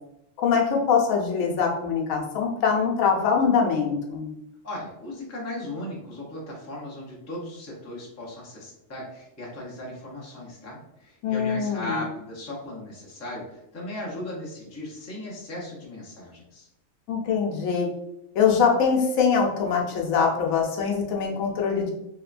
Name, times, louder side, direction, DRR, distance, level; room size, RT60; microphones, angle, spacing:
voice 1, 0.4-4.3 11.2-12.0 17.1-17.9 18.3-21.9, left 6 dB, 85° left, 0 dB, 1.0 m, -23 dB
voice 2, 4.6-16.7, left 1 dB, 20° left, -4 dB, 0.5 m, -37 dB
3.0 x 2.1 x 2.4 m, 0.82 s
omnidirectional pair, 1.4 m